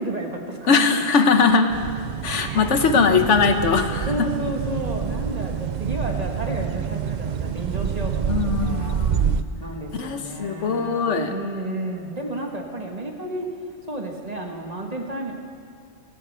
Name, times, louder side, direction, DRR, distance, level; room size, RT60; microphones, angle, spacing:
voice 1, 0.0-0.8 2.4-3.2 4.1-9.0 9.6-13.5 13.9-15.3, right 1 dB, 35° right, 1 dB, 1.4 m, -31 dB
voice 2, 0.7-1.7 2.2-4.3 8.3-9.4 9.9-11.3, left 5 dB, 80° left, 7 dB, 1.3 m, -20 dB
sound 1, 1.7-9.4, right 8 dB, 60° right, 0.5 m, -27 dB
19.0 x 15.0 x 3.4 m, 2.3 s
omnidirectional pair, 1.2 m